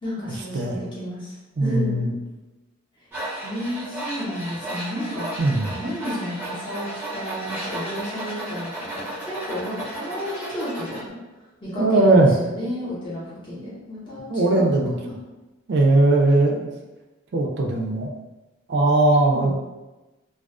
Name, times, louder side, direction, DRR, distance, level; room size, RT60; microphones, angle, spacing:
voice 1, 0.0-1.3 1.6-1.9 3.4-5.3 5.7-11.1 11.6-15.2 19.2-19.5, equal, 25° left, -9 dB, 0.8 m, -32 dB
voice 2, 1.6-2.1 5.4-5.7 11.8-12.3 14.3-14.9 15.7-16.7 17.3-18.1 18.7-19.5, right 2 dB, 55° right, 0 dB, 0.3 m, -19 dB
Tools, 3.1-11.0, right 1 dB, 10° right, 0.6 m, -34 dB
2.3 x 2.3 x 2.3 m, 1.1 s
head